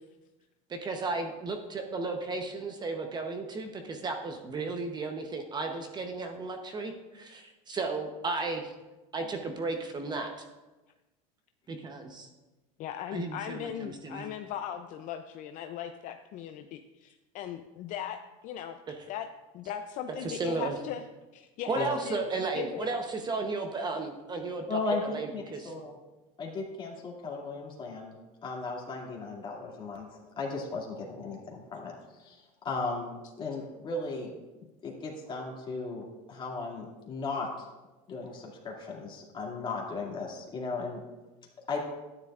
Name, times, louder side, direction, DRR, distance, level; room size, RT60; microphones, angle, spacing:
voice 1, 0.7-8.7 9.1-10.3 11.7-12.3 13.1-14.3 18.9-19.0 20.2-20.8 21.7-25.7, right 3 dB, 25° right, 5 dB, 0.8 m, -34 dB
voice 2, 12.8-18.2 18.4-18.8 19.1-19.3 19.5-21.0 21.3-22.9, left 9 dB, 45° left, 7 dB, 0.5 m, -38 dB
voice 3, 24.7-26.0 26.4-28.1 28.4-30.0 30.4-34.3 34.8-37.5 38.1-41.0 41.7-41.8, left 3 dB, 25° left, -2 dB, 2.3 m, -36 dB
13.0 x 9.9 x 2.4 m, 1.1 s
supercardioid pair, 130°, 18 cm